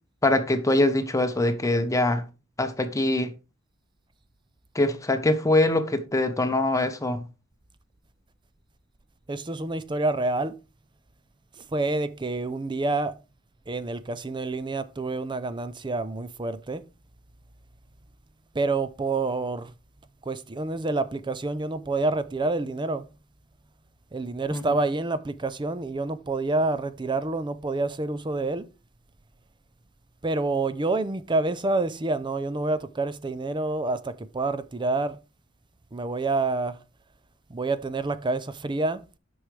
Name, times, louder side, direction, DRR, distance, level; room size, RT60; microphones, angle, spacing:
voice 1, 0.2-2.3 2.6-3.3 4.7-7.2 24.5-24.6, left 2 dB, 15° left, 0.8 m, -23 dB
voice 2, 9.3-10.6 11.6-13.2 13.7-16.8 18.5-19.7 20.3-23.0 24.1-28.6 30.2-35.2 35.9-36.8 37.5-39.0, right 3 dB, 20° right, 0.5 m, -28 dB
9.8 x 6.2 x 3.3 m
head